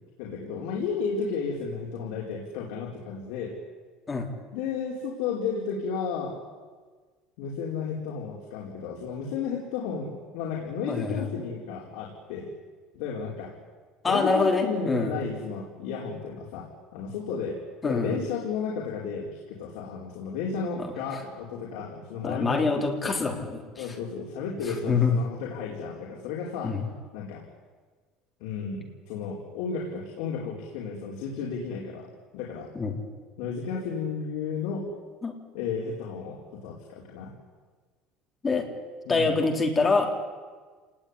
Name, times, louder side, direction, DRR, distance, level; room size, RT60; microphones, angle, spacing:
voice 1, 0.2-3.5 4.5-6.4 7.4-12.5 12.9-13.5 14.1-17.6 17.8-22.7 23.0-23.1 23.8-26.7 27.1-27.4 28.4-32.7 33.4-34.9 35.5-37.3 39.0-39.3, left 5 dB, 70° left, -2 dB, 4.7 m, -33 dB
voice 2, 10.9-11.2 14.0-15.1 17.8-18.2 20.7-20.9 22.2-23.9 24.9-25.1 26.6-26.9 32.8-33.0 35.2-35.3 38.4-38.7 39.1-40.1, left 4 dB, 15° left, 2 dB, 3.5 m, -25 dB
28.5 x 19.5 x 9.9 m, 1.5 s
cardioid pair, 175°, 0 cm